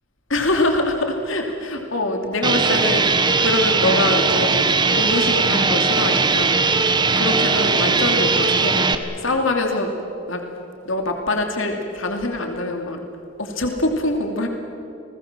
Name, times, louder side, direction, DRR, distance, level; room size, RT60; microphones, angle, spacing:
voice 1, 0.3-4.7 4.9-8.9 9.1-9.9 10.3-10.4 10.8-13.0 13.4-14.5, left 2 dB, 75° left, 3 dB, 2.7 m, -24 dB
sound 1, 2.4-9.0, right 4 dB, 20° right, 1.2 m, -19 dB
29.5 x 20.5 x 7.5 m, 2.8 s
head